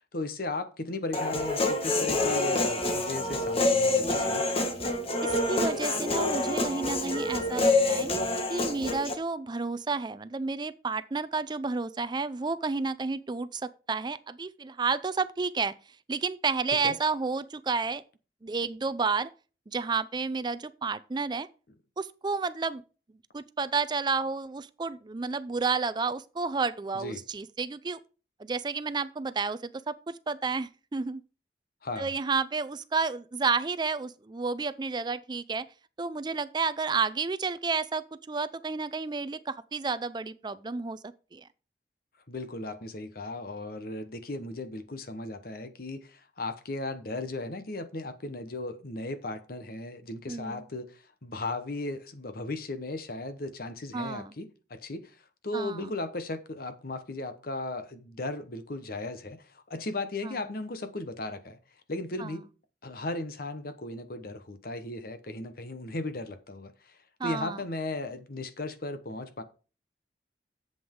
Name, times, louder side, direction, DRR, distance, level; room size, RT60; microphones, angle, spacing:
voice 1, 0.0-4.5 16.8-17.0 26.9-27.2 31.8-32.1 42.3-55.1 55.4-61.6 61.9-62.4 62.8-69.4, left 2 dB, 55° left, 1.1 m, -36 dB
Human voice, 1.1-9.1, left 2 dB, 35° left, 1.5 m, -27 dB
voice 2, 5.2-8.1 8.5-13.6 13.9-15.7 16.1-18.0 18.4-19.3 19.7-21.5 22.0-22.8 23.3-28.0 28.4-31.2 32.0-35.7 36.0-41.5 50.3-50.6 53.9-54.3 55.5-55.9 60.2-60.4 62.2-62.3 67.2-67.6, right 4 dB, 25° right, 0.4 m, -31 dB
10.5 x 7.9 x 3.7 m
head